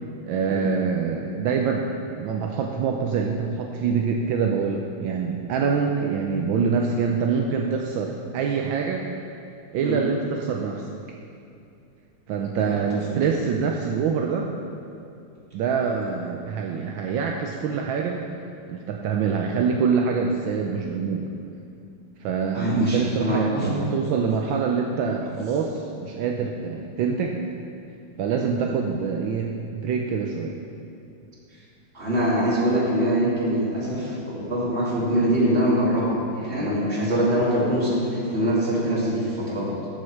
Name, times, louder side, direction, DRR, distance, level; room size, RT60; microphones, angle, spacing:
voice 1, 0.2-9.1 9.7-10.8 12.3-14.5 15.5-18.2 18.7-21.3 22.2-27.4 28.2-30.6, right 5 dB, 80° right, 1 dB, 1.4 m, -25 dB
voice 2, 22.5-23.8 31.9-39.7, equal, 30° right, -6 dB, 2.6 m, -23 dB
13.5 x 6.4 x 4.7 m, 2.6 s
omnidirectional pair, 2.1 m